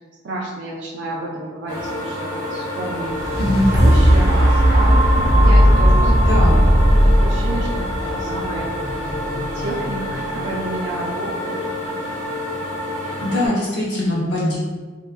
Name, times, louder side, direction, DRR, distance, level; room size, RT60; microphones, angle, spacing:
voice 1, 0.2-3.4 3.7-5.0 5.3-6.9 7.2-8.7 9.1-11.6, right 2 dB, 80° right, -3 dB, 0.4 m, -30 dB
Fridge engine, 1.7-13.5, left 1 dB, 15° left, 1.0 m, -28 dB
sound 1, 2.9-11.0 11.6-11.7, equal, 15° right, 0.5 m, -16 dB
voice 2, 13.2-14.6, left 1 dB, 70° left, -7 dB, 0.7 m, -21 dB
2.7 x 2.5 x 2.4 m, 1.4 s
head